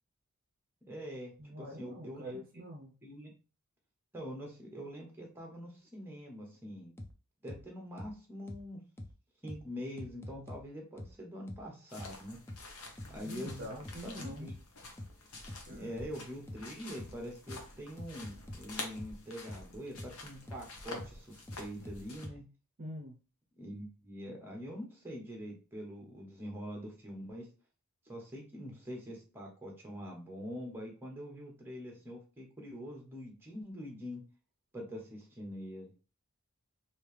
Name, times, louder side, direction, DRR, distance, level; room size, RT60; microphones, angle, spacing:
voice 1, 0.9-2.4 3.0-3.3 4.1-6.9 7.4-8.8 9.4-12.4 13.1-13.7 14.0-14.5 15.7-22.5 23.6-27.5 28.1-34.2 34.7-35.9, equal, 10° right, 0 dB, 1.0 m, -44 dB
voice 2, 1.4-3.0 13.2-14.5 15.7-15.9 22.8-23.2, equal, 40° right, 0 dB, 0.6 m, -45 dB
sound 1, 7.0-7.1 7.5-7.6 8.0-8.1 8.5-8.6 9.0-9.1 9.5-9.6 10.0-10.6 11.0-11.1 11.5-11.6 12.0-12.1 12.5-12.6 13.0-13.1 13.5-14.6 15.0-15.1 15.5-15.6 16.0-16.1 16.5-16.6 17.0-17.1 17.5-17.6 18.0-18.6 19.0-19.1 19.5-19.6 20.0-20.1 20.5-20.6 21.0-21.1 21.5-22.4, left 1 dB, 10° left, 0.4 m, -45 dB
sound 2, 11.9-22.3, left 3 dB, 70° left, 0.9 m, -48 dB
3.2 x 2.8 x 3.3 m, 0.35 s
head